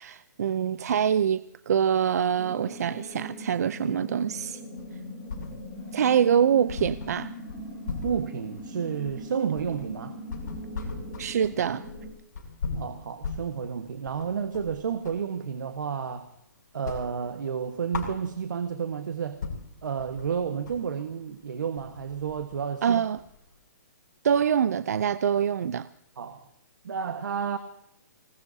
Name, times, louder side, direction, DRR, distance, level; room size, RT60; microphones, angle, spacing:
voice 1, 0.0-4.6 5.9-7.3 11.2-11.8 22.8-23.2 24.2-25.9, right 8 dB, 55° right, 0.5 m, -25 dB
sound 1, 2.3-12.1, equal, 5° left, 7.0 m, -41 dB
sound 2, 4.8-5.9 6.2-6.3 6.7-15.3 15.7-16.4 16.7-18.7 19.1-19.2 19.4-23.6, left 4 dB, 65° left, 6.2 m, -38 dB
voice 2, 8.0-10.2 12.7-16.3 16.7-19.4 19.8-23.0 26.2-26.4 26.8-27.6, right 7 dB, 75° right, 1.4 m, -31 dB
25.5 x 19.5 x 2.8 m
hypercardioid pair, 170°, 10 cm